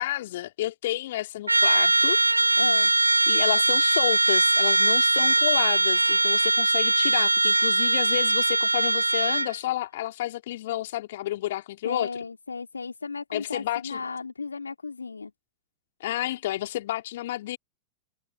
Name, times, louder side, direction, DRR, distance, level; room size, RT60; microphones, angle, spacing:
voice 1, 0.0-2.2 3.3-12.1 13.3-14.0 16.0-17.6, left 14 dB, 55° left, 4.4 m, -30 dB
Trumpet, 1.5-9.5, right 2 dB, 85° right, 2.4 m, -21 dB
voice 2, 2.6-2.9 11.8-15.3, left 4 dB, 75° left, 2.8 m, -34 dB
figure-of-eight pair, 90°, 0 cm